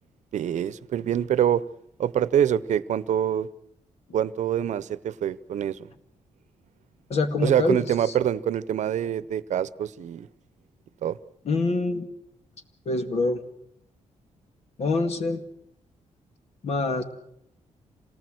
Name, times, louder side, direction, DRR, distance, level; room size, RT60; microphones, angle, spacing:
voice 1, 0.3-1.6 2.0-3.5 4.1-5.9 7.4-10.3 11.0-11.2, right 10 dB, 75° right, 17 dB, 0.8 m, -25 dB
voice 2, 7.1-7.9 11.5-12.1 12.9-13.4 14.8-15.4 16.6-17.0, left 3 dB, 60° left, 8 dB, 2.1 m, -25 dB
27.0 x 19.0 x 7.9 m, 0.75 s
wide cardioid pair, 140°, 12 cm